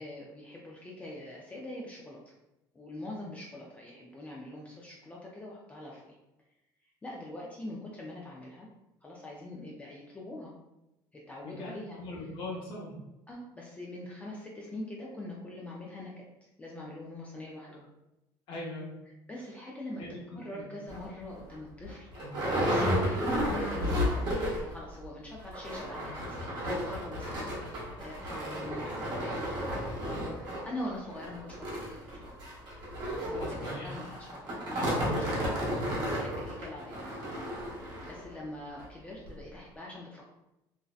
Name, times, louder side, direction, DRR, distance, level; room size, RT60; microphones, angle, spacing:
voice 1, 0.0-2.3 2.7-6.2 7.0-8.7 9.0-10.5 11.1-12.0 13.3-17.9 19.3-20.0 20.3-22.1 22.6-32.4 33.3-35.7 36.1-37.0 38.0-40.3, left 1 dB, 15° left, -3 dB, 0.3 m, -43 dB
voice 2, 11.4-13.0 17.7-17.8 18.5-18.9 19.9-20.7 22.1-22.3 33.4-33.9, left 2 dB, 65° left, -3 dB, 0.8 m, -41 dB
sound 1, 20.9-21.0 21.5-21.6 21.8-24.8 25.0-25.1 25.4-38.2 38.8-38.9 39.3-39.4, equal, 55° right, 0.9 m, -33 dB
2.6 x 2.0 x 2.3 m, 0.93 s
cardioid pair, 130°, 9 cm